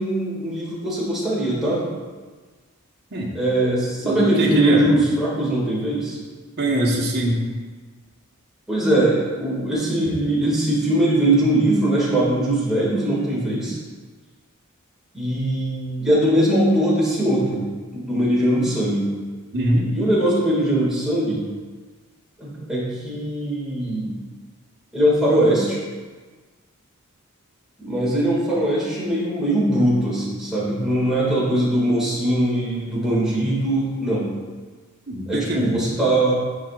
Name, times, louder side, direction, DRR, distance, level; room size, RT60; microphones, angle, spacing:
voice 1, 0.0-1.9 3.3-6.2 8.7-13.8 15.1-17.6 17.9-19.0 19.9-21.4 22.4-24.1 24.9-25.8 27.8-34.3 35.3-36.3, right 1 dB, ahead, -8 dB, 2.1 m, -21 dB
voice 2, 4.0-4.9 6.6-7.4 19.5-19.9 35.1-35.8, right 1 dB, 50° right, -2 dB, 1.2 m, -22 dB
10.5 x 4.9 x 2.4 m, 1.4 s
head